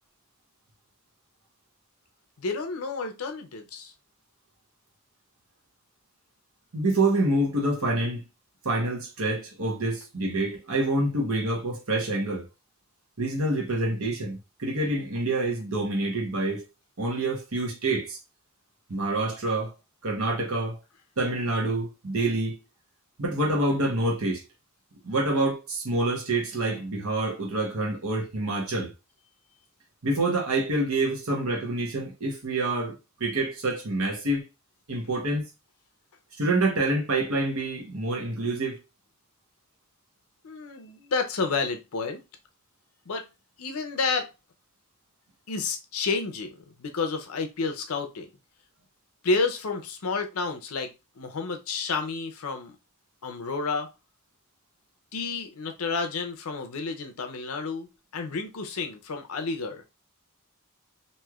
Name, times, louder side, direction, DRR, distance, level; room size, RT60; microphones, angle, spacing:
voice 1, 2.4-3.9 40.4-42.2 43.1-43.3 43.6-44.3 45.5-48.3 49.2-50.9 51.2-52.8 53.2-53.9 55.1-59.8, left 4 dB, 80° left, 0.6 m, -30 dB
voice 2, 6.7-8.2 8.6-12.4 13.2-16.6 17.0-18.2 18.9-19.7 20.0-20.8 21.2-22.6 23.2-24.4 25.0-28.9 30.0-34.5 34.9-35.4 36.4-38.8, right 2 dB, 80° right, 1.0 m, -27 dB
3.1 x 2.7 x 2.3 m
head